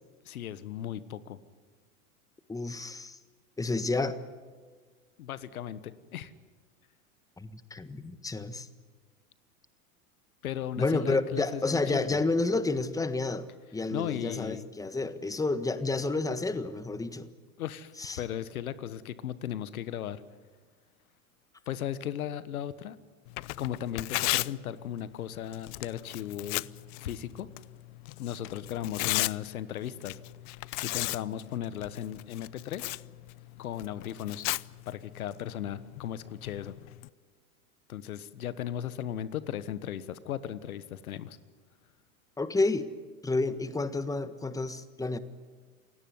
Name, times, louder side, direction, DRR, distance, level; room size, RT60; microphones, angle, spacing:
voice 1, 0.2-1.4 5.2-6.3 10.4-12.2 13.9-14.7 17.6-20.2 21.7-23.0 23.6-26.7 27.0-27.5 28.2-30.2 30.5-32.9 33.6-34.5 34.9-36.7 37.9-41.4, left 10 dB, 85° left, 15 dB, 1.4 m, -36 dB
voice 2, 2.5-3.2 3.6-4.2 7.4-8.7 10.8-17.3 18.0-18.2 42.4-42.9 43.2-45.2, left 3 dB, 10° left, 12 dB, 1.4 m, -30 dB
Tearing, 23.3-37.1, left 23 dB, 60° left, 0.7 m, -37 dB
28.0 x 17.5 x 9.7 m, 1.5 s
hypercardioid pair, 100°, 42 cm